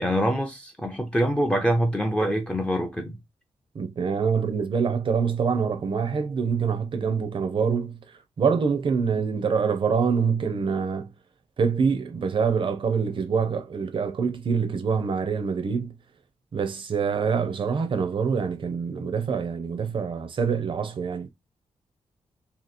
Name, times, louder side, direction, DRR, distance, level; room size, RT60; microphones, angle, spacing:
voice 1, 0.0-3.2, equal, 10° left, 0.5 m, -25 dB
voice 2, 3.7-8.0 8.4-11.1 11.6-15.9 16.5-21.3, right 6 dB, 45° right, 0.6 m, -25 dB
2.9 x 2.8 x 4.1 m
wide cardioid pair, 155°, 12 cm